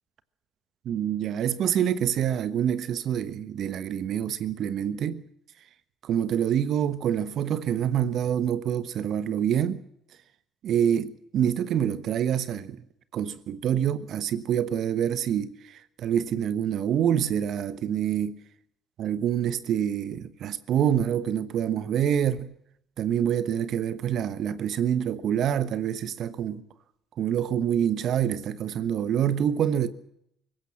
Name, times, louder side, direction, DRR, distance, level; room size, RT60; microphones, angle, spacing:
voice 1, 0.8-5.2 6.0-9.8 10.6-12.8 13.1-18.4 19.0-22.5 23.0-26.6 27.2-29.9, right 9 dB, 60° right, 1.3 m, -26 dB
24.5 x 16.0 x 7.3 m
hypercardioid pair, 55°, 0 cm